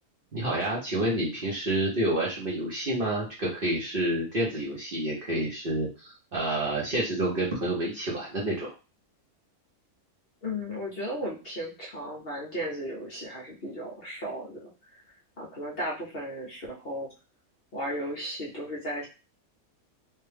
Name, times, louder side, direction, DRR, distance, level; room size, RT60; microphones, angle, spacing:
voice 1, 0.3-8.7, right 1 dB, 45° right, -4 dB, 0.9 m, -29 dB
voice 2, 10.4-14.7 15.4-17.1 17.7-19.1, equal, 45° left, -3 dB, 0.9 m, -35 dB
3.3 x 2.2 x 3.3 m, 0.31 s
omnidirectional pair, 1.6 m